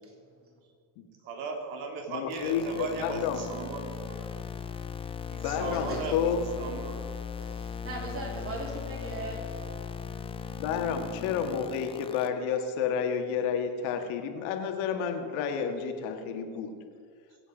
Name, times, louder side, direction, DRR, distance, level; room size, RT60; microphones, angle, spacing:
voice 1, 1.3-4.3 5.3-6.2 6.6-7.0, right 4 dB, 70° right, 2 dB, 2.9 m, -37 dB
voice 2, 2.1-3.5 5.4-6.4 10.6-16.9, left 7 dB, 70° left, 5 dB, 1.8 m, -30 dB
sound 1, 2.3-12.3, left 6 dB, 15° left, 0.4 m, -38 dB
voice 3, 5.7-6.1 7.4-9.6, right 2 dB, 25° right, 0 dB, 3.1 m, -39 dB
22.5 x 8.2 x 5.1 m, 2.2 s
supercardioid pair, 125°, 49 cm